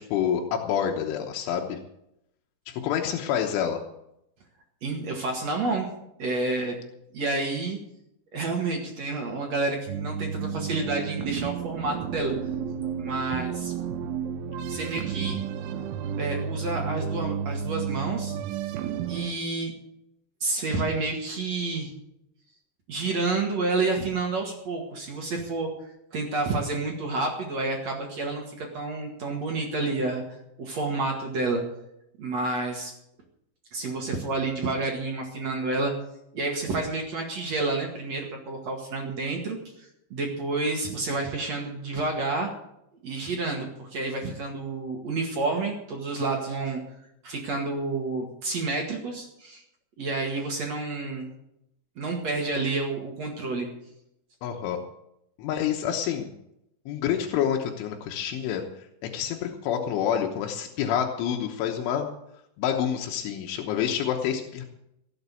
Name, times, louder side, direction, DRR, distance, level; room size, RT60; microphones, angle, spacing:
voice 1, 0.0-1.8 2.7-3.8 54.4-54.8 55.4-56.3 56.9-58.6 59.1-62.1 62.6-64.7, left 9 dB, 85° left, 2 dB, 3.6 m, -27 dB
voice 2, 4.8-5.9 6.2-6.7 7.1-7.8 8.3-12.3 13.0-13.7 14.7-15.4 16.2-18.4 19.1-19.7 20.4-21.9 22.9-25.7 26.1-31.6 32.2-32.9 33.7-35.9 36.3-42.5 43.0-46.8 47.2-49.6 50.0-51.3 52.0-53.7, right 3 dB, 50° right, 1 dB, 2.3 m, -29 dB
sound 1, 9.9-19.3, right 7 dB, 85° right, 3.3 m, -32 dB
16.5 x 8.0 x 8.3 m, 0.81 s
omnidirectional pair, 5.4 m